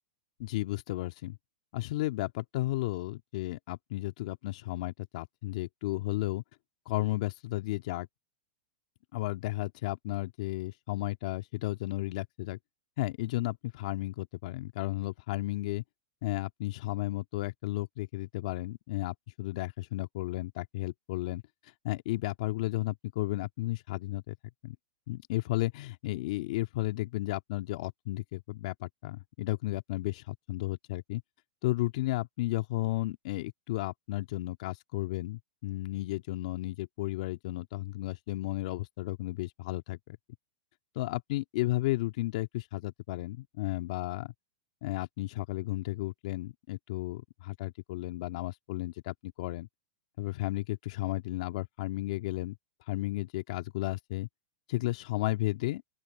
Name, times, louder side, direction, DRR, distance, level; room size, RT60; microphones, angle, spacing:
voice 1, 0.4-1.4 1.7-6.4 6.9-8.1 9.1-12.6 13.0-15.8 16.2-21.4 21.8-24.4 24.6-24.8 25.1-31.2 31.6-40.2 41.0-44.3 44.8-49.7 50.2-52.5 52.9-54.3 54.7-55.8, left 17 dB, 60° left, 2.1 m, -33 dB
open air
hypercardioid pair, 130°, 4 cm